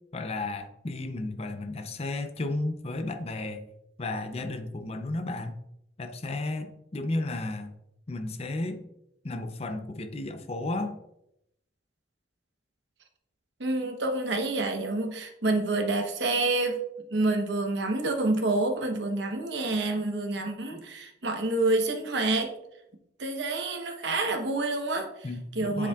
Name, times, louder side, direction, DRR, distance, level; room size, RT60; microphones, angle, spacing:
voice 1, 0.1-3.6 4.0-5.5 6.0-7.7 8.1-8.8 9.2-11.0 25.2-25.9, left 2 dB, 35° left, 8 dB, 0.5 m, -33 dB
voice 2, 13.6-16.8 17.1-22.5 23.2-25.1 25.5-25.9, right 2 dB, 70° right, 4 dB, 1.0 m, -28 dB
7.2 x 7.0 x 2.4 m, 0.81 s
head